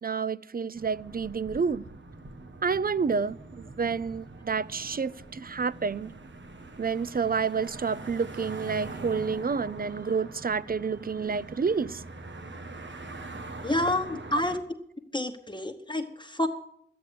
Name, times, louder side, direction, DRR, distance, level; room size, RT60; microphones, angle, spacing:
voice 1, 0.0-1.8 2.6-6.1 6.8-12.0, right 5 dB, 55° right, 0.5 m, -29 dB
sound 1, 0.7-14.6, right 2 dB, 85° right, 1.3 m, -43 dB
voice 2, 13.6-14.6 15.1-16.5, left 1 dB, 25° left, 1.1 m, -28 dB
13.0 x 9.5 x 8.5 m
wide cardioid pair, 50°, 19 cm